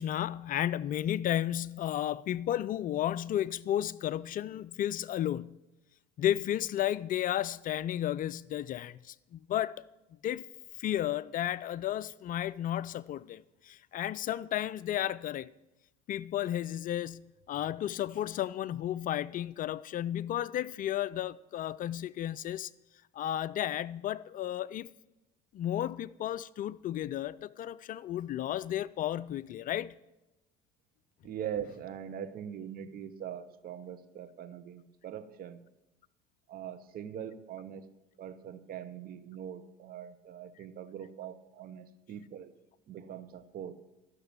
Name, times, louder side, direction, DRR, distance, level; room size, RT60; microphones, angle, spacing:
voice 1, 0.0-5.6 6.2-9.9 10.2-10.5 10.8-15.5 16.1-22.7 23.1-24.9 25.5-30.0, left 12 dB, 45° left, 0.4 m, -33 dB
voice 2, 31.2-35.6 36.5-37.9 38.2-42.6 42.9-43.7, right 9 dB, 50° right, 1.2 m, -42 dB
12.5 x 6.7 x 8.8 m
hypercardioid pair, 75°, 20 cm